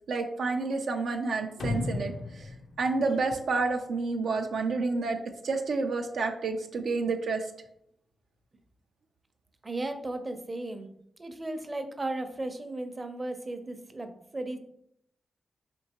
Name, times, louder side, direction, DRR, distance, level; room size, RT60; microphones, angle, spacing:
voice 1, 0.1-2.5 2.8-5.2 5.4-7.5, right 3 dB, 80° right, 3 dB, 0.3 m, -29 dB
sound 1, 1.6-4.1, left 3 dB, 75° left, 0.4 m, -35 dB
voice 2, 9.6-10.9 11.2-14.6, right 2 dB, 30° right, 7 dB, 0.6 m, -35 dB
4.4 x 2.8 x 2.8 m, 0.75 s
cardioid pair, 55°, 0 cm